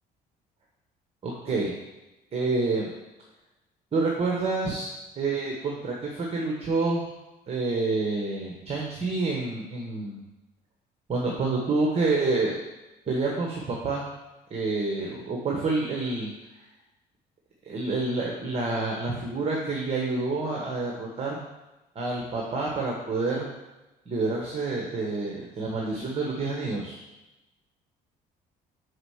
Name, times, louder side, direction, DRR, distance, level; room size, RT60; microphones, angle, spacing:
voice 1, 1.2-1.7 2.3-2.9 3.9-4.9 5.2-7.1 7.5-10.2 11.1-12.6 13.1-14.0 14.5-16.3 17.7-21.4 21.9-23.5 24.1-27.0, right 3 dB, 35° right, -2 dB, 1.3 m, -28 dB
5.5 x 5.0 x 6.4 m, 1.0 s
cardioid pair, 110°, 17 cm